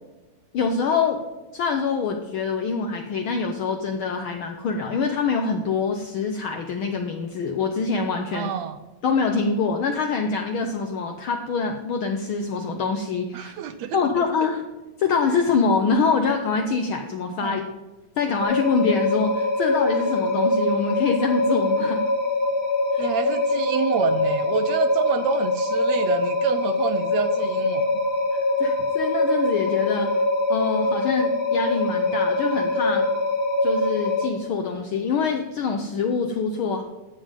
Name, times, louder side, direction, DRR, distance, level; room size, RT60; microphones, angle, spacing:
voice 1, 0.5-1.2 1.5-8.5 9.0-13.5 13.9-14.6 15.0-17.7 18.2-22.0 22.9-23.1 28.6-30.2 30.5-33.1 33.6-36.8, left 5 dB, 80° left, 4 dB, 1.1 m, -25 dB
voice 2, 8.3-8.8 13.3-14.2 17.4-17.6 23.0-28.0, right 8 dB, 75° right, 10 dB, 1.7 m, -28 dB
sound 1, 18.4-34.3, left 2 dB, 40° left, 2.0 m, -23 dB
12.5 x 7.4 x 5.2 m, 1.1 s
omnidirectional pair, 3.4 m